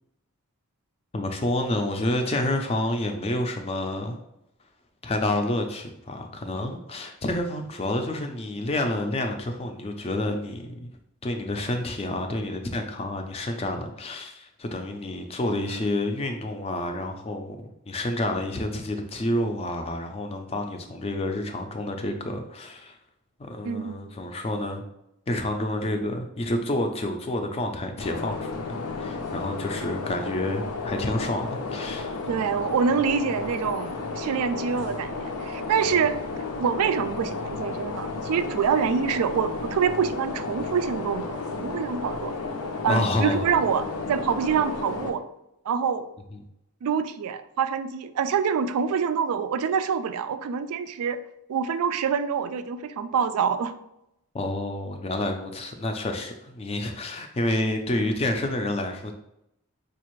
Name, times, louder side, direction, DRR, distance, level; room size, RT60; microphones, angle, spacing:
voice 1, 1.1-4.2 5.0-10.9 11.2-17.6 17.9-23.0 23.4-24.8 25.3-32.2 35.8-36.2 42.9-43.4 46.3-46.4 54.3-59.1, left 1 dB, 25° left, 5 dB, 0.4 m, -29 dB
voice 2, 23.6-24.1 32.3-36.1 36.6-42.3 42.8-43.8 44.1-45.2 45.7-46.1 46.8-51.2 51.5-53.7, right 6 dB, 80° right, 12 dB, 0.3 m, -26 dB
sound 1, 28.0-45.1, left 3 dB, 85° left, 0.5 m, -33 dB
4.3 x 2.4 x 3.0 m, 0.81 s
head